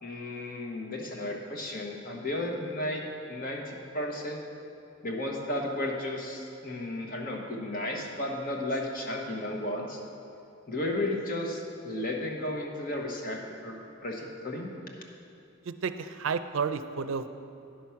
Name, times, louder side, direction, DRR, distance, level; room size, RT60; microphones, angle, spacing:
voice 1, 0.0-3.0 3.3-4.4 5.0-10.0 10.7-13.8 14.0-14.7, left 1 dB, 45° left, 0 dB, 1.1 m, -33 dB
voice 2, 15.7-17.3, right 5 dB, 80° right, 11 dB, 0.4 m, -31 dB
10.0 x 6.1 x 5.7 m, 2.7 s
head